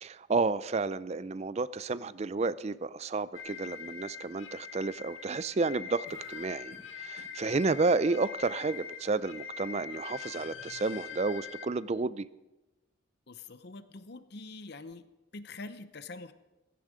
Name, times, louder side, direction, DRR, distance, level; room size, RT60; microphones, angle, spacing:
voice 1, 0.0-12.3, right 3 dB, 35° right, 17 dB, 0.4 m, -31 dB
sound 1, 3.3-11.7, left 7 dB, 80° left, 1.4 m, -43 dB
sound 2, 6.0-9.0, right 1 dB, 75° right, 7.3 m, -55 dB
voice 2, 13.3-15.0 15.3-16.3, left 3 dB, 55° left, 12 dB, 0.8 m, -45 dB
16.5 x 14.0 x 5.0 m, 1.0 s
head